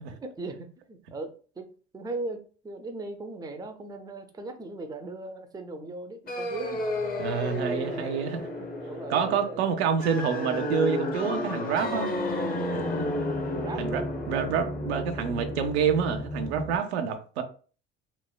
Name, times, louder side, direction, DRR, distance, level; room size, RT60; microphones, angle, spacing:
voice 1, 0.2-6.8 7.4-8.0 8.6-9.6 12.8-13.1 13.6-14.0, right 2 dB, 10° right, 7 dB, 0.4 m, -39 dB
sound 1, 6.3-16.8, left 1 dB, 25° left, 0.8 m, -32 dB
voice 2, 7.2-8.5 9.1-12.1 12.7-12.9 13.8-14.0 14.3-17.4, right 7 dB, 80° right, 7 dB, 0.5 m, -27 dB
3.1 x 2.1 x 2.2 m, 0.39 s
hypercardioid pair, 60°, 32 cm